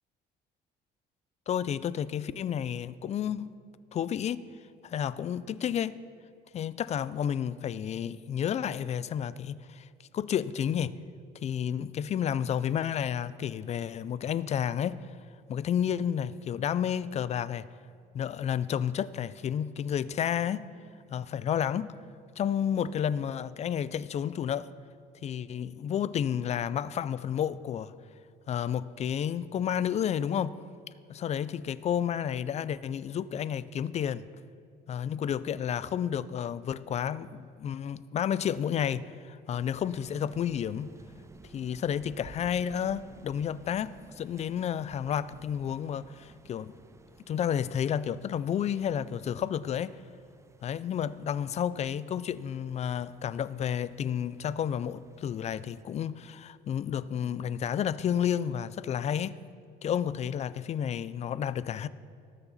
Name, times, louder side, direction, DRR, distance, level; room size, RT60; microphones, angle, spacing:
voice 1, 1.5-3.5 3.9-4.4 4.8-5.9 6.5-9.9 10.1-10.9 11.4-15.1 15.5-17.7 18.1-20.7 21.1-21.9 22.4-24.7 25.2-27.9 28.5-30.6 31.1-34.3 34.9-40.9 41.5-46.7 47.3-50.0 50.6-59.4 59.8-61.9, left 9 dB, 40° left, 0.4 m, -31 dB
sound 1, 39.5-55.8, right 3 dB, 15° right, 0.5 m, -55 dB
18.5 x 7.0 x 4.0 m
cardioid pair, 110°, 17 cm